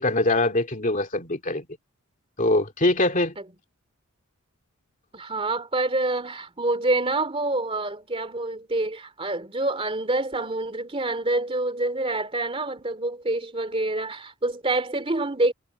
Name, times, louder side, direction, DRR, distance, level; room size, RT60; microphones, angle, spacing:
voice 1, 0.0-1.7 2.4-3.4, left 2 dB, 35° left, 2.7 m, -23 dB
voice 2, 5.1-15.5, right 2 dB, 25° right, 2.7 m, -27 dB
head